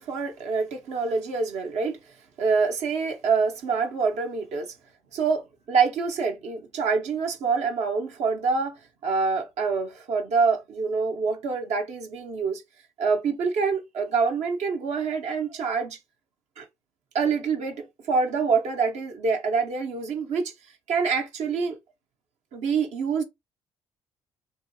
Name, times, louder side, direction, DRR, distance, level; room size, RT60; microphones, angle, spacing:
voice 1, 0.0-2.0 2.4-4.7 5.1-12.6 13.0-16.0 16.6-16.7 17.1-20.5 20.9-21.8 22.5-23.2, right 5 dB, 65° right, 0.8 m, -26 dB
2.8 x 2.7 x 2.3 m
hypercardioid pair, 50°, 12 cm